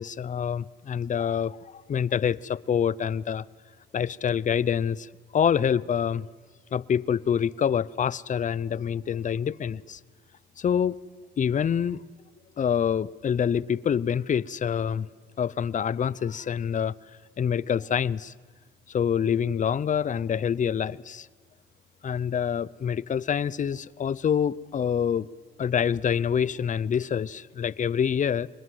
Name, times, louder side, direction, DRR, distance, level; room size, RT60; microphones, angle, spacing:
voice 1, 0.0-1.6 1.9-3.5 3.9-6.3 6.7-10.0 10.6-10.9 11.4-12.0 12.6-15.1 15.4-16.9 17.4-18.3 18.9-21.3 22.0-25.3 25.6-28.5, left 8 dB, 40° left, 0.6 m, -26 dB
24.5 x 21.0 x 7.8 m
cardioid pair, 90°, 20 cm